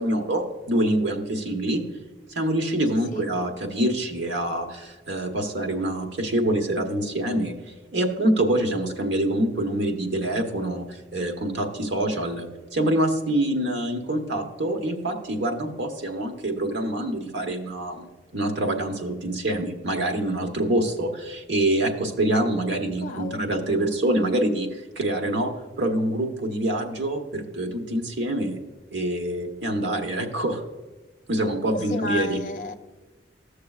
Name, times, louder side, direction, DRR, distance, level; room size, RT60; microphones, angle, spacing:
voice 1, 0.0-1.8 2.3-7.5 7.9-25.5 25.8-28.6 28.9-30.6 31.3-32.4, right 1 dB, 80° right, 1.1 m, -25 dB
voice 2, 23.0-23.4 31.9-32.7, left 2 dB, 50° left, 0.7 m, -31 dB
14.5 x 6.6 x 2.4 m
head